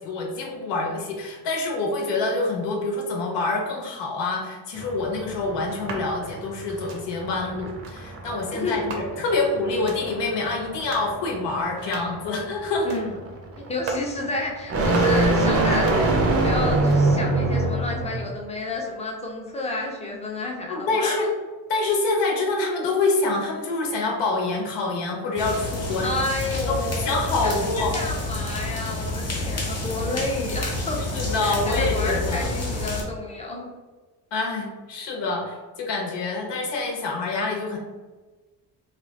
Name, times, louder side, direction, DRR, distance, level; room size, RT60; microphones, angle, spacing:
voice 1, 0.0-12.9 20.7-21.3 21.7-26.1 26.6-28.0 31.1-32.5 34.3-37.8, left 3 dB, 85° left, -1 dB, 1.0 m, -26 dB
sound 1, 4.8-18.3, right 2 dB, 35° right, 0.5 m, -25 dB
sound 2, 5.6-6.1 6.7-7.0 7.6-8.0 8.7-9.3 9.7-10.0 10.6-11.1 11.6-12.2 12.7-13.1 13.6-14.1 14.6-15.2 15.6-16.4 16.6-17.2, right 3 dB, 80° right, 0.8 m, -38 dB
voice 2, 12.8-13.2 13.6-21.3 26.0-31.0 31.4-33.7, left 2 dB, 15° left, 0 dB, 0.5 m, -30 dB
sound 3, 25.4-33.0, left 2 dB, 35° left, 1.0 m, -29 dB
3.0 x 2.3 x 3.9 m, 1.3 s
cardioid pair, 160°, 42 cm